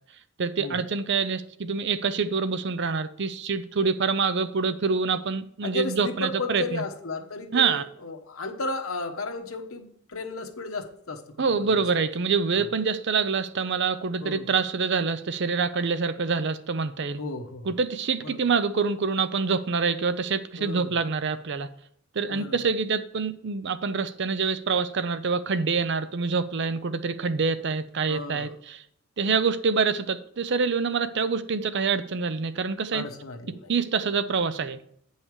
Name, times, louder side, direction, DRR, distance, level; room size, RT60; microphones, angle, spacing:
voice 1, 0.4-6.8 7.5-7.8 11.4-17.2 17.6-21.7 22.2-28.8 29.2-33.0 33.7-34.8, right 5 dB, 60° right, 12 dB, 0.6 m, -26 dB
voice 2, 5.6-11.7 12.5-12.7 14.2-14.5 17.2-17.7 18.3-18.4 20.6-21.0 22.3-22.6 28.1-28.5 32.9-33.7, left 3 dB, 90° left, 4 dB, 1.1 m, -34 dB
8.5 x 5.6 x 4.7 m, 0.67 s
head